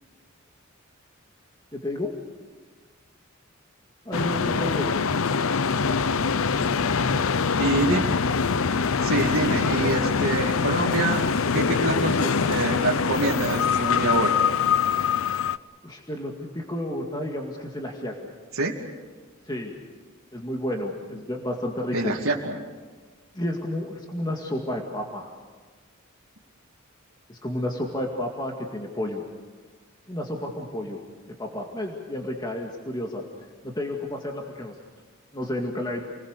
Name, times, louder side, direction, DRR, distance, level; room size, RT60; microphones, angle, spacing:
voice 1, 1.7-2.1 4.1-4.9 15.8-18.3 19.5-19.7 20.3-22.1 23.3-25.3 27.3-29.2 30.1-31.0 31.4-34.8 35.3-36.0, left 1 dB, 20° left, 0 dB, 2.1 m, -31 dB
sound 1, 4.1-15.6, left 5 dB, 80° left, 0.6 m, -24 dB
sound 2, 5.8-10.9, equal, 40° left, 6.9 m, -37 dB
voice 2, 7.5-8.1 9.0-14.3 18.5-18.8 21.9-22.6, right 2 dB, 90° right, -4 dB, 2.6 m, -26 dB
29.0 x 21.0 x 6.7 m, 1.4 s
head